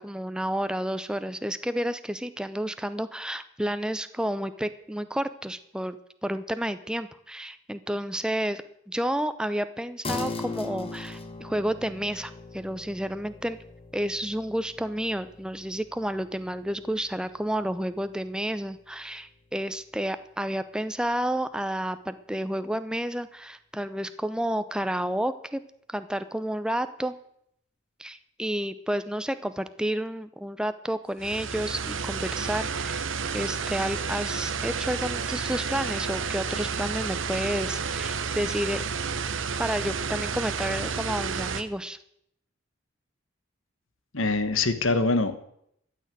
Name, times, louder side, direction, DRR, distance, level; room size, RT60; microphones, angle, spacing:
voice 1, 0.0-13.6 13.9-25.6 25.9-27.1 28.0-33.0 33.3-38.8 39.6-42.0, equal, 5° right, 12 dB, 0.6 m, -30 dB
sound 1, 10.0-19.8, left 3 dB, 30° left, 1.3 m, -41 dB
sound 2, 31.2-41.6, right 5 dB, 80° right, 1.0 m, -31 dB
voice 2, 44.1-45.4, left 3 dB, 90° left, 10 dB, 1.3 m, -24 dB
14.5 x 6.6 x 9.2 m, 0.73 s
head